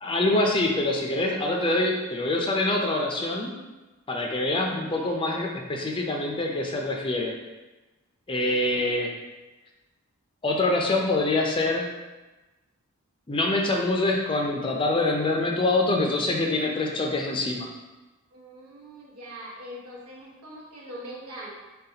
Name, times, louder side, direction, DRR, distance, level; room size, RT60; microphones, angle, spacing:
voice 1, 0.0-3.5 4.1-7.4 8.3-9.1 10.4-11.9 13.3-17.7, left 2 dB, 25° left, 0 dB, 0.4 m, -25 dB
voice 2, 4.6-5.4 18.3-21.5, right 1 dB, 85° right, -4 dB, 1.1 m, -42 dB
4.0 x 3.7 x 2.8 m, 1.1 s
head